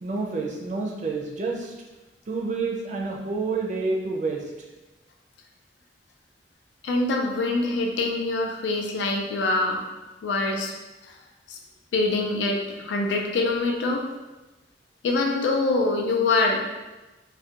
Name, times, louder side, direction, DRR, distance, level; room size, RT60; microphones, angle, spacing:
voice 1, 0.0-1.7 2.3-4.4, right 3 dB, 40° right, -1 dB, 0.4 m, -28 dB
voice 2, 6.8-9.8 10.2-10.7 11.5-11.6 11.9-14.0 15.0-16.6, left 3 dB, 85° left, 2 dB, 0.4 m, -24 dB
2.3 x 2.2 x 2.8 m, 1.1 s
head